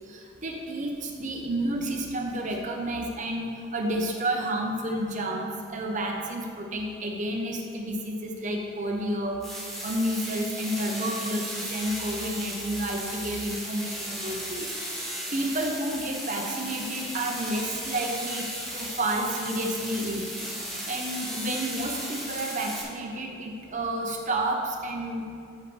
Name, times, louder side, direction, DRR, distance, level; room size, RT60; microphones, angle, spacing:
voice 1, 0.1-9.5 9.8-14.7 15.0-18.5 18.7-20.3 20.9-25.3, right 1 dB, 40° right, 1 dB, 0.8 m, -30 dB
sound 1, 9.4-22.8, equal, ahead, 1.2 m, -36 dB
14.0 x 5.6 x 3.3 m, 2.5 s
head